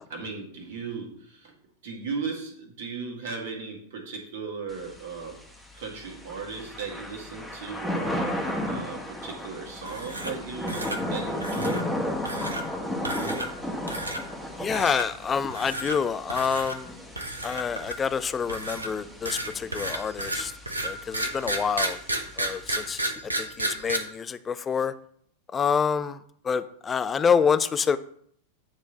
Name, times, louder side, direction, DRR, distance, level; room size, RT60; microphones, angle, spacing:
voice 1, 0.1-1.5 1.8-5.4 5.7-11.9, right 5 dB, 55° right, 1 dB, 1.7 m, -37 dB
Thunder / Rain, 4.7-22.9, left 1 dB, ahead, 1.2 m, -35 dB
sound 1, 9.8-10.4 10.7-11.0 11.4-11.8 12.3-12.6 13.0-13.6 13.9-14.2 14.7-15.1 15.5-16.0 16.3-16.8 17.2-18.1 18.5-24.0, right 1 dB, 80° right, 0.8 m, -31 dB
voice 2, 14.6-17.0 17.4-20.5 20.8-22.0 22.4-24.9 25.5-26.2 26.4-28.0, left 6 dB, 20° left, 13 dB, 0.4 m, -27 dB
8.9 x 3.2 x 4.0 m, 0.63 s
figure-of-eight pair, 90°, 0 cm